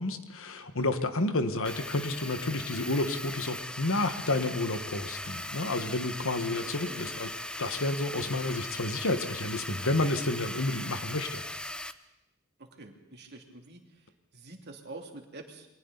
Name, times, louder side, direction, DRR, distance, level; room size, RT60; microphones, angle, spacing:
voice 1, 0.0-7.3 7.6-11.4, left 2 dB, 65° left, 8 dB, 1.6 m, -30 dB
sound 1, 1.6-11.9, left 1 dB, 5° left, 0.7 m, -39 dB
voice 2, 6.5-7.2 12.6-13.8 14.3-15.7, right 2 dB, 50° right, 2 dB, 2.8 m, -46 dB
28.5 x 23.0 x 4.1 m, 0.92 s
head